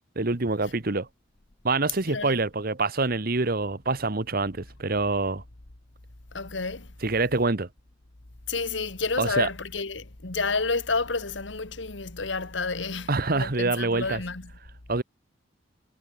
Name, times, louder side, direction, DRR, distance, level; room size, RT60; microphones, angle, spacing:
voice 1, 0.2-1.1 1.6-5.4 7.0-7.7 9.2-9.5 13.1-14.2 14.9-15.0, right 3 dB, 55° right, 1.3 m, -26 dB
voice 2, 6.3-6.9 8.5-13.1 13.3-14.5, left 4 dB, 80° left, 1.8 m, -30 dB
head